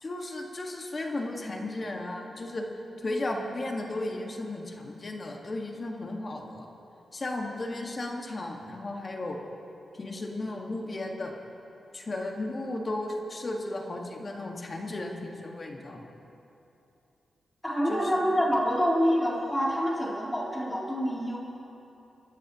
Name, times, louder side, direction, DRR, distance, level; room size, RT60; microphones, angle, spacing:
voice 1, 0.0-2.7 3.0-6.7 7.1-9.4 9.9-11.3 11.9-16.1 17.9-18.2, left 2 dB, 40° left, 0 dB, 1.8 m, -35 dB
voice 2, 17.6-21.4, equal, 10° left, -6 dB, 3.9 m, -26 dB
29.5 x 12.5 x 3.1 m, 2.9 s
cardioid pair, 90°, 0 cm